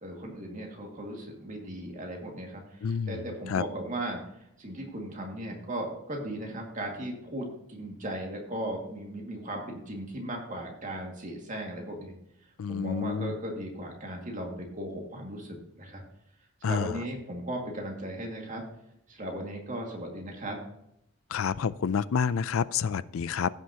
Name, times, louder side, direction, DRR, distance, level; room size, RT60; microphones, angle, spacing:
voice 1, 0.0-12.2 12.7-16.0 16.6-18.6 19.1-20.6, right 1 dB, 40° right, 0 dB, 2.1 m, -37 dB
voice 2, 2.8-3.2 3.5-3.6 12.6-13.3 16.6-16.9 21.3-23.5, left 6 dB, 85° left, 18 dB, 0.4 m, -28 dB
15.5 x 6.3 x 2.9 m, 0.80 s
head